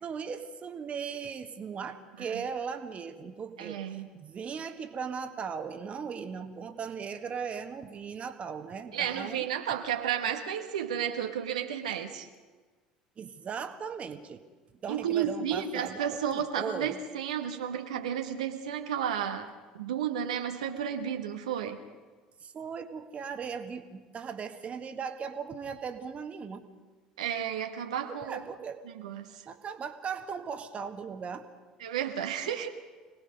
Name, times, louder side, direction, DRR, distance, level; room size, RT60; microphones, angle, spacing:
voice 1, 0.0-9.5 13.2-14.4 14.8-17.0 22.4-26.7 28.1-28.8 29.4-31.5, right 6 dB, 35° right, 8 dB, 1.7 m, -38 dB
voice 2, 3.6-4.1 8.9-12.3 14.9-21.8 27.2-28.4 28.8-29.4 31.8-32.7, right 9 dB, 75° right, 4 dB, 1.4 m, -32 dB
26.5 x 19.5 x 5.3 m, 1.4 s
figure-of-eight pair, 65°, 4 cm